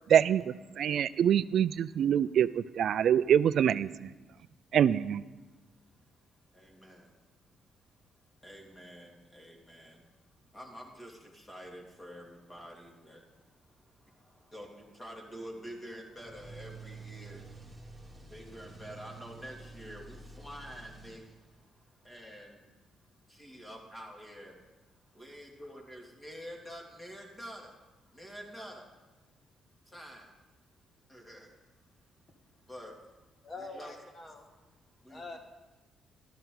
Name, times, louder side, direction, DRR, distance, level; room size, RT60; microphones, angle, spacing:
voice 1, 0.1-4.1 4.7-5.2, right 9 dB, 65° right, 16 dB, 0.3 m, -25 dB
voice 2, 6.5-7.2 7.9-8.0 8.4-10.0 10.5-22.7 23.3-24.6 24.9-28.9 29.8-30.3 31.1-31.5 32.7-33.9 35.0-35.4, equal, 15° left, 0 dB, 2.8 m, -48 dB
sound 1, 16.2-21.6, right 3 dB, 5° right, 3.2 m, -49 dB
voice 3, 33.4-34.5 35.1-35.4, left 3 dB, 35° left, 3 dB, 1.9 m, -44 dB
12.5 x 12.5 x 4.0 m, 1.2 s
cardioid pair, 90°, 0 cm